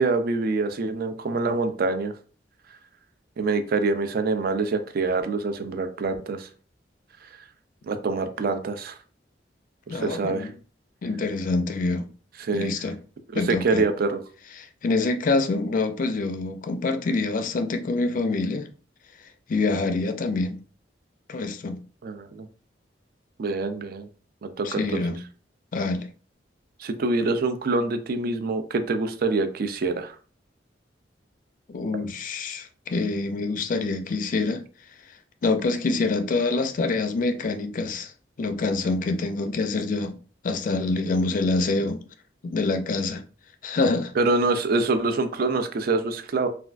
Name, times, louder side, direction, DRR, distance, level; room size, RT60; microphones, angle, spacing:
voice 1, 0.0-2.1 3.4-6.5 7.8-9.0 9.9-10.5 12.4-12.7 13.3-14.2 22.0-22.5 23.4-24.1 24.4-25.0 26.8-30.1 44.2-46.5, right 3 dB, 55° right, 0.4 m, -25 dB
voice 2, 9.9-10.5 11.0-12.1 12.5-13.0 13.3-13.8 14.6-18.7 19.5-20.6 21.3-21.8 24.6-25.2 25.7-26.1 31.7-34.6 35.4-38.1 38.4-40.2 40.4-42.0 42.4-43.2 43.6-44.1, left 3 dB, 45° left, 0.4 m, -26 dB
3.3 x 2.3 x 2.4 m
head